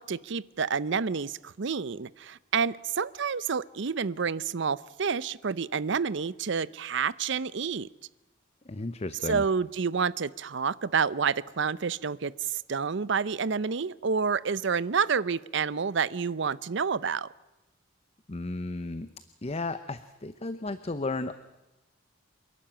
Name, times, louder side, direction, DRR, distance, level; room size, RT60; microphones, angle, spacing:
voice 1, 0.0-7.9 9.3-17.3, right 6 dB, 65° right, 19 dB, 0.6 m, -29 dB
voice 2, 8.7-9.4 18.3-19.1 19.4-21.3, left 2 dB, 30° left, 12 dB, 0.7 m, -34 dB
28.0 x 12.0 x 8.8 m, 1.0 s
head